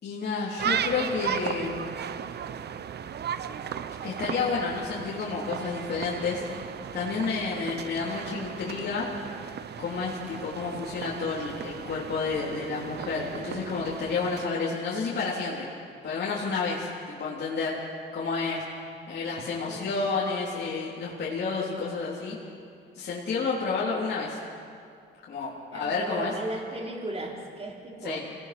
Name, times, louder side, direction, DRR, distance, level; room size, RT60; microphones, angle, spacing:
voice 1, 0.0-1.9 4.0-6.4 6.9-9.1 9.8-15.7 16.0-17.7 18.1-18.6 19.1-22.4 22.9-24.4 25.3-26.3 28.0-28.2, left 4 dB, 55° left, -6 dB, 3.4 m, -30 dB
sound 1, 0.6-14.5, right 8 dB, 55° right, 0.8 m, -36 dB
voice 2, 25.7-28.2, right 2 dB, 30° right, -1 dB, 3.9 m, -36 dB
25.5 x 18.0 x 6.1 m, 2.4 s
cardioid pair, 90°, 20 cm